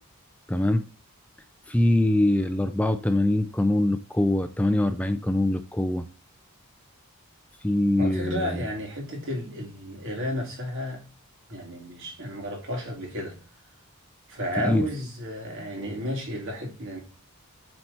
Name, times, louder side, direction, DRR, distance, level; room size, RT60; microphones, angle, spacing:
voice 1, 0.5-0.8 1.7-6.0 7.6-8.6 14.6-14.8, left 1 dB, 5° left, 9 dB, 0.4 m, -23 dB
voice 2, 8.0-11.0 11.5-13.4 14.3-17.0, equal, 60° right, 0 dB, 3.0 m, -32 dB
7.8 x 4.3 x 4.3 m, 0.35 s
head